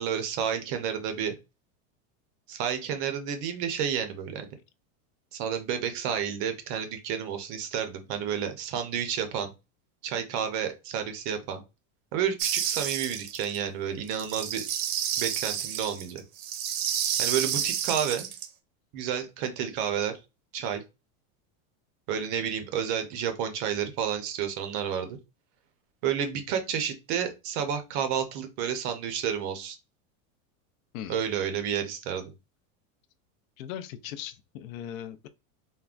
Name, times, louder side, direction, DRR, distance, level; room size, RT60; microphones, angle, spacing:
voice 1, 0.0-1.3 2.5-4.5 5.3-9.5 10.0-11.6 12.1-14.6 15.2-16.2 17.2-18.3 18.9-20.1 20.5-20.8 22.1-25.2 26.0-29.8 31.1-32.3, right 8 dB, 40° right, 0.5 m, -30 dB
sound 1, 12.4-13.6 14.1-18.5, right 9 dB, 80° right, 0.8 m, -30 dB
voice 2, 33.6-35.3, left 10 dB, 70° left, 0.5 m, -39 dB
3.6 x 2.1 x 2.4 m
supercardioid pair, 160°, 42 cm